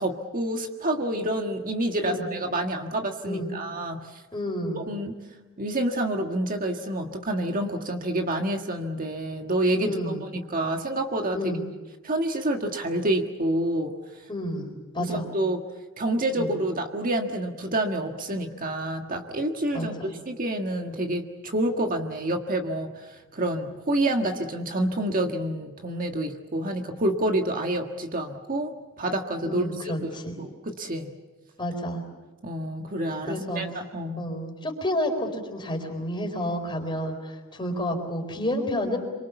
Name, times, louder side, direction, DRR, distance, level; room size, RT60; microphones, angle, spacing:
voice 1, 0.0-4.2 4.7-5.2 5.6-10.0 10.3-11.5 12.0-13.9 15.0-15.6 16.0-28.7 29.0-29.9 30.4-31.1 32.4-34.3, right 1 dB, 40° right, 3 dB, 1.6 m, -28 dB
voice 2, 4.3-4.8 9.8-10.2 11.3-11.6 14.3-15.3 16.4-16.5 19.7-20.1 29.4-30.4 31.6-32.0 33.3-33.6 34.2-39.0, left 1 dB, 25° left, 3 dB, 4.3 m, -30 dB
27.0 x 24.0 x 7.1 m, 1.2 s
head